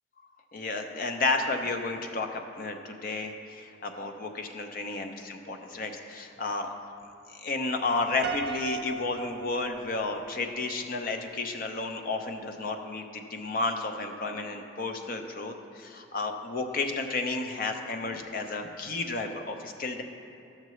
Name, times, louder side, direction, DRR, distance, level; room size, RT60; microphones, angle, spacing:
voice 1, 0.5-6.7 7.3-20.0, left 3 dB, 50° left, 5 dB, 0.6 m, -32 dB
Piano, 8.2-10.5, right 5 dB, 60° right, 0.5 m, -37 dB
12.0 x 6.6 x 3.1 m, 2.6 s
head